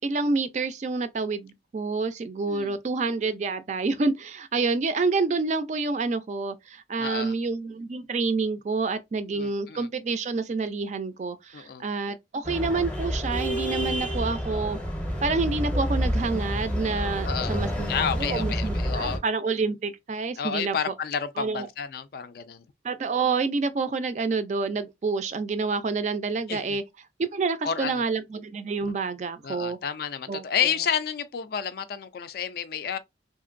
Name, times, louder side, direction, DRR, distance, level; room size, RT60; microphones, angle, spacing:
voice 1, 0.0-14.8 15.2-17.9 18.2-20.8 21.4-21.7 22.8-26.8 27.2-29.8 30.3-30.4, right 4 dB, 40° right, 0.3 m, -28 dB
voice 2, 2.5-2.8 7.0-7.3 9.3-9.9 11.5-11.9 17.2-17.6 17.9-19.2 20.4-22.6 26.5-26.8 27.6-28.0 28.8-28.9 29.4-33.0, left 7 dB, 55° left, 0.3 m, -30 dB
sound 1, 12.4-19.2, equal, 5° left, 0.6 m, -29 dB
2.9 x 2.5 x 2.4 m
head